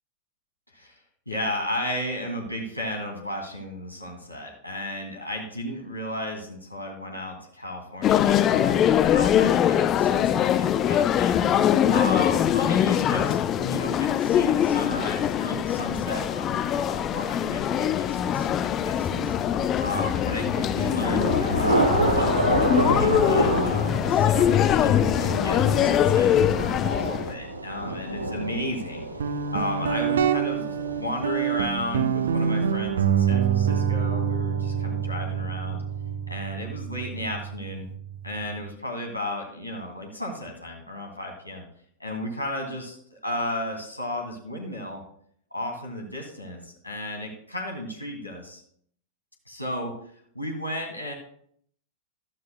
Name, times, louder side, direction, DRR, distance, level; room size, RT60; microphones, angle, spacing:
voice 1, 1.3-11.4 11.9-19.3 19.8-30.7 30.9-35.8 36.3-37.9 38.2-41.6 42.0-45.0 45.5-48.6 49.5-49.9 50.3-51.1, left 1 dB, 85° left, 0 dB, 2.3 m, -34 dB
sound 1, 8.0-27.3, left 10 dB, 30° left, 0.5 m, -22 dB
Thunder / Rain, 20.0-31.6, right 1 dB, 85° right, 1.1 m, -28 dB
Guitar, 29.2-38.7, right 7 dB, 65° right, 0.9 m, -26 dB
14.5 x 12.5 x 2.2 m, 0.64 s
figure-of-eight pair, 90°, 0 cm